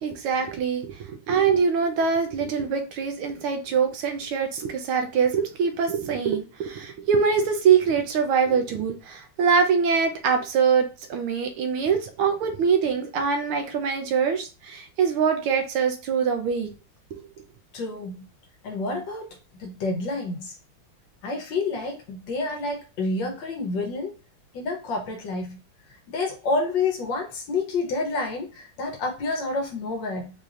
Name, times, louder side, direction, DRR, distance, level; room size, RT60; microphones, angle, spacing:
voice 1, 0.0-16.7, right 6 dB, 80° right, 1.6 m, -23 dB
voice 2, 17.7-18.2 18.6-20.5 21.2-24.2 24.5-25.6 26.1-30.3, left 3 dB, 65° left, 1.4 m, -29 dB
4.8 x 2.8 x 2.5 m
omnidirectional pair, 2.4 m